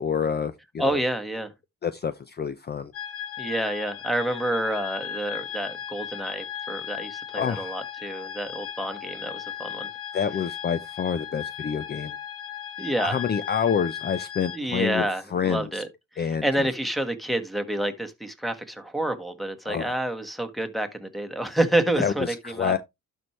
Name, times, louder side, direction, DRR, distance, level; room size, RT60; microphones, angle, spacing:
voice 1, 0.0-1.0 1.8-2.9 7.4-7.8 10.1-12.2 13.0-15.8 16.2-16.7 19.7-20.0 22.0-22.8, left 7 dB, 35° left, 0.6 m, -28 dB
voice 2, 0.8-1.5 3.4-9.9 12.8-13.2 14.5-15.9 16.1-22.8, right 1 dB, ahead, 1.6 m, -28 dB
sound 1, 2.9-14.6, left 9 dB, 50° left, 1.4 m, -36 dB
11.5 x 4.6 x 3.2 m
cardioid pair, 90°, 30 cm